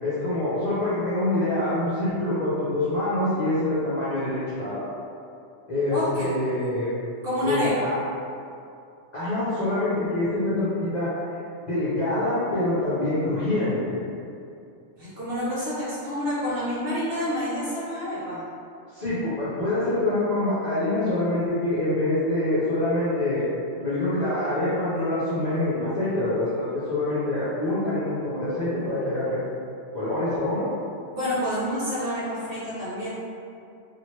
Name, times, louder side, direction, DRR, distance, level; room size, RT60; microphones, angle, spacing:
voice 1, 0.0-4.8 5.7-6.9 7.4-7.9 9.1-11.1 11.7-14.0 18.9-23.5 23.8-29.4 29.9-30.7, left 1 dB, 45° left, -12 dB, 0.7 m, -25 dB
voice 2, 5.9-6.4 7.2-7.9 15.0-18.4 31.1-33.1, equal, 55° right, -9 dB, 0.8 m, -28 dB
2.8 x 2.4 x 3.1 m, 2.5 s
omnidirectional pair, 1.3 m